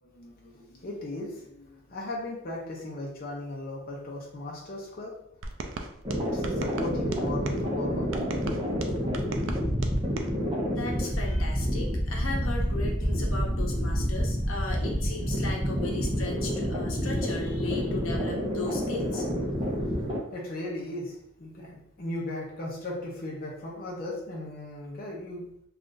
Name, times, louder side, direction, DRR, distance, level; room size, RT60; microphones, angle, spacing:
voice 1, 0.0-5.1 6.3-8.2 19.7-25.5, left 2 dB, 45° left, -3 dB, 0.6 m, -37 dB
sound 1, 5.4-7.6 8.1-10.3, right 3 dB, 65° right, 0.4 m, -37 dB
sound 2, 6.0-20.2, equal, 20° right, 0.6 m, -28 dB
voice 2, 10.7-19.3, left 3 dB, 80° left, 0 dB, 0.8 m, -36 dB
2.5 x 2.4 x 3.8 m, 0.74 s
head